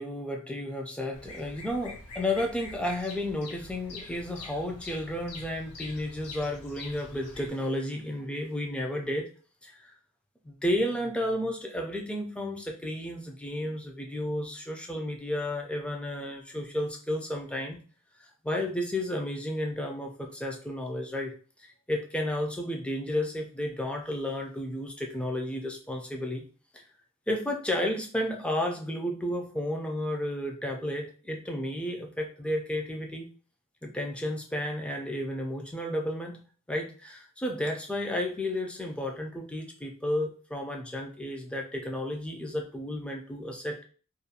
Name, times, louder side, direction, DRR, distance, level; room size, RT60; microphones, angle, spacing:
voice 1, 0.0-9.3 9.6-9.9 10.4-17.8 18.2-21.3 21.6-26.4 26.7-26.8 27.3-33.3 33.8-36.4 36.7-43.8, left 1 dB, 5° left, 1 dB, 0.3 m, -32 dB
Bird vocalization bird call bird song, 1.1-7.5, left 3 dB, 80° left, 0.7 m, -45 dB
2.4 x 2.2 x 2.7 m, 0.41 s
head